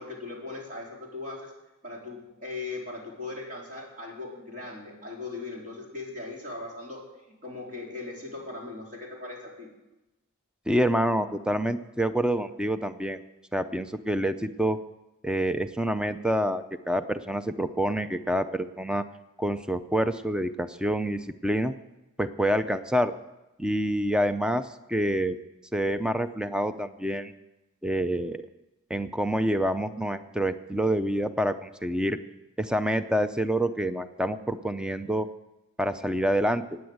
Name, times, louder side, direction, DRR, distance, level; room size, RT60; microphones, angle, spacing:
voice 1, 0.0-1.5 1.8-9.7, left 3 dB, 40° right, -2 dB, 4.3 m, -39 dB
voice 2, 10.7-13.2 13.5-14.8 15.2-19.0 19.4-21.7 22.2-23.1 23.6-25.4 25.7-27.3 27.8-28.4 28.9-32.2 32.6-35.3 35.8-36.8, equal, 5° right, 10 dB, 0.5 m, -27 dB
17.0 x 9.5 x 7.9 m, 0.99 s
head